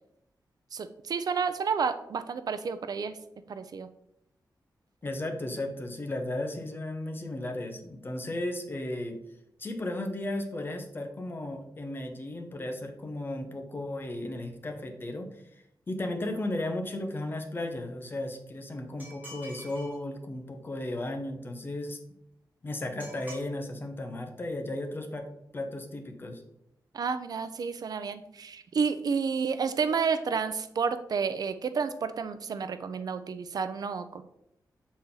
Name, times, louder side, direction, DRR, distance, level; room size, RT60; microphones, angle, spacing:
voice 1, 0.7-3.2 3.5-3.9 26.9-34.2, right 5 dB, 60° right, 11 dB, 0.5 m, -30 dB
voice 2, 5.0-9.2 9.6-22.0 22.6-25.3 25.5-26.4, left 1 dB, 30° left, 4 dB, 0.8 m, -35 dB
sound 1, 19.0-20.0 23.0-23.5, equal, 20° right, 2.4 m, -46 dB
7.2 x 4.1 x 3.8 m, 0.79 s
wide cardioid pair, 175°, 7 cm